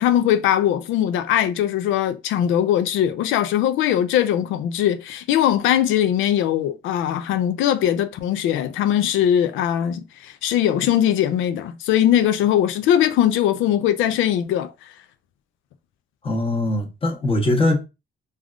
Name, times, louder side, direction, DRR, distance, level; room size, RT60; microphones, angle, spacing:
voice 1, 0.0-14.7, left 11 dB, 85° left, 0.4 m, -20 dB
voice 2, 16.2-17.8, left 1 dB, 30° left, 1.0 m, -21 dB
3.3 x 2.3 x 2.4 m
cardioid pair, 90°, 20 cm